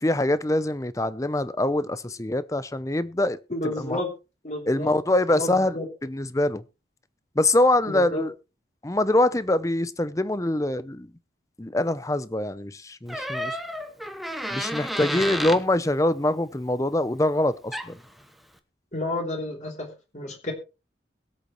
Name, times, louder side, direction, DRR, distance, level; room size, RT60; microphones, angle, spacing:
voice 1, 0.0-3.4 3.8-4.0 4.7-5.8 6.0-6.6 7.4-8.3 8.8-11.1 11.6-13.6 14.5-18.0, left 1 dB, 15° left, 0.6 m, -24 dB
voice 2, 3.5-4.1 4.4-4.9 5.3-5.9 7.9-8.2 18.9-20.5, left 1 dB, 40° left, 3.3 m, -31 dB
Door, 13.1-15.7 17.4-17.5 17.7-18.1, equal, ahead, 1.0 m, -31 dB
22.0 x 8.3 x 3.1 m
head